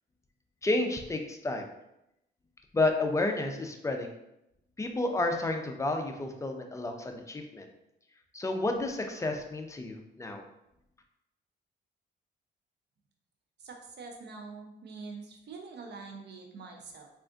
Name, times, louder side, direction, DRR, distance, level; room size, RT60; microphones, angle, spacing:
voice 1, 0.6-1.7 2.7-4.1 4.8-7.7 8.3-10.4, left 2 dB, 15° left, 4 dB, 0.4 m, -31 dB
voice 2, 13.6-17.1, right 4 dB, 60° right, 2 dB, 0.6 m, -45 dB
3.4 x 2.5 x 2.5 m, 0.83 s
cardioid pair, 90°, 20 cm